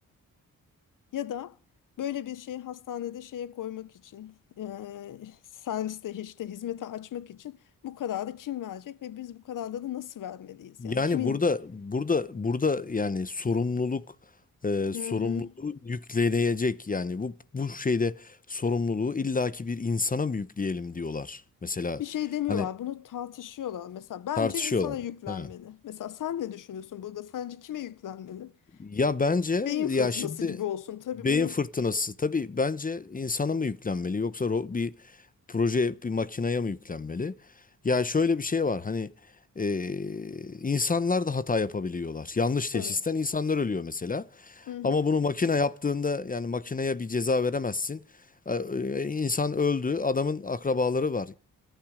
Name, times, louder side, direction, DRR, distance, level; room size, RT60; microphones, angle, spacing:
voice 1, 1.1-1.6 2.0-11.4 14.9-15.5 22.0-28.5 29.6-31.5 42.7-43.0 44.7-45.0, left 11 dB, 70° left, 0.9 m, -35 dB
voice 2, 10.8-14.0 14.6-22.0 22.5-22.7 24.4-24.9 25.3-25.5 28.8-30.6 31.2-34.9 35.5-37.3 37.8-39.1 39.6-48.0 48.5-51.3, left 4 dB, 25° left, 0.8 m, -28 dB
27.5 x 9.2 x 5.0 m
cardioid pair, 80°, 33 cm